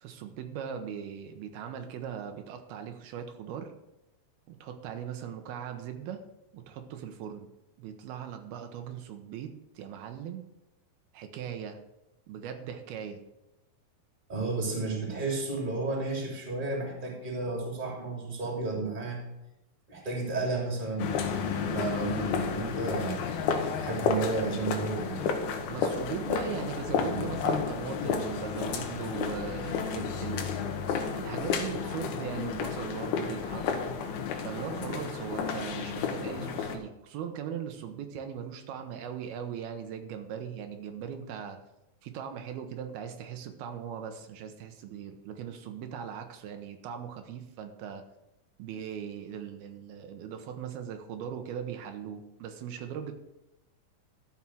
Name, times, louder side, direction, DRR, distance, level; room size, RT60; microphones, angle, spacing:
voice 1, 0.0-3.7 4.5-6.2 6.5-7.5 7.8-10.5 11.1-11.8 12.3-13.2 25.7-30.5 31.1-33.7 34.4-41.6 42.0-48.0 48.6-53.1, right 8 dB, 85° right, 6 dB, 2.9 m, -39 dB
voice 2, 14.3-19.2 19.9-21.2 21.5-23.3 23.8-25.2, right 3 dB, 15° right, 0 dB, 2.4 m, -32 dB
sound 1, 21.0-36.8, left 6 dB, 85° left, 3.0 m, -32 dB
13.0 x 5.6 x 6.2 m, 0.92 s
omnidirectional pair, 4.3 m